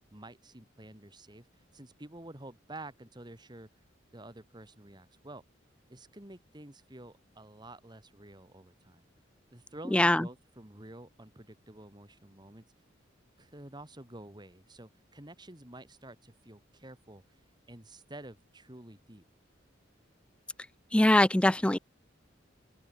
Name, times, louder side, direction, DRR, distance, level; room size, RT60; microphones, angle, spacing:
voice 1, 0.1-1.5 1.7-3.7 4.1-5.4 5.9-9.0 9.5-12.6 13.4-17.2 17.7-19.2, right 1 dB, 25° right, 2.7 m, -49 dB
voice 2, 9.9-10.3 20.9-21.8, left 1 dB, 5° left, 0.3 m, -22 dB
open air
head